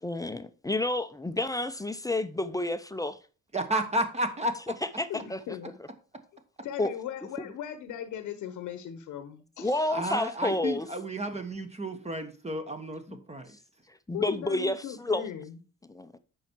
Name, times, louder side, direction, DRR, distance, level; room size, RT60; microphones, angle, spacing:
voice 1, 0.0-3.2 5.0-5.4 6.8-6.9 7.4-7.5 9.6-10.9 13.1-13.2 14.1-15.2 15.9-16.1, left 2 dB, 10° left, 0.6 m, -30 dB
voice 2, 3.5-4.7 9.9-13.5, right 1 dB, 20° right, 1.2 m, -32 dB
voice 3, 5.1-5.8 6.6-9.9 14.1-15.6, left 10 dB, 85° left, 1.0 m, -38 dB
8.9 x 5.6 x 4.5 m
cardioid pair, 90°, 30 cm